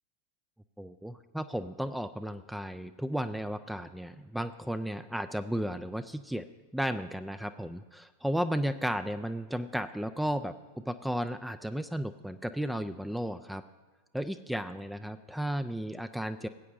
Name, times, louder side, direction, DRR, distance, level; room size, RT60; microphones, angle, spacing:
voice 1, 0.8-6.5 6.7-13.6 14.1-16.5, equal, ahead, 10 dB, 0.4 m, -34 dB
17.5 x 8.5 x 2.6 m, 1.4 s
figure-of-eight pair, 90°, 0 cm